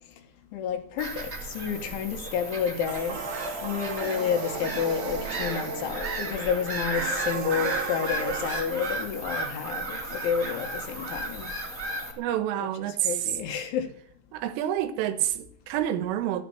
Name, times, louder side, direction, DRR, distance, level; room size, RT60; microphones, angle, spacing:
voice 1, 0.5-11.5 12.6-13.9, left 7 dB, 75° left, 3.8 m, -30 dB
Bird vocalization bird call bird song / Gull seagull, 1.0-12.1, right 2 dB, 20° right, 2.2 m, -34 dB
sound 1, 2.9-8.6, right 4 dB, 50° right, 2.9 m, -35 dB
voice 2, 12.2-13.1 14.3-16.4, right 11 dB, 85° right, 3.7 m, -28 dB
13.5 x 10.5 x 9.0 m
omnidirectional pair, 5.7 m